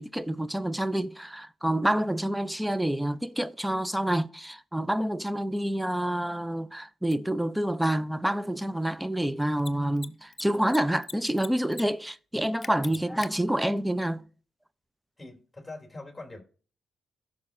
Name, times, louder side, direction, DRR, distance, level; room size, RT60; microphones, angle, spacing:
voice 1, 0.0-14.3, right 1 dB, 5° right, 0.6 m, -28 dB
Mechanisms, 7.1-7.2 9.5-9.7 10.0-10.1 10.3-11.1 11.4-11.8 12.1-12.2 12.6-13.3, left 4 dB, 40° left, 0.5 m, -39 dB
voice 2, 15.2-16.4, left 2 dB, 10° left, 2.7 m, -43 dB
15.5 x 6.0 x 2.6 m
supercardioid pair, 55°, 0 cm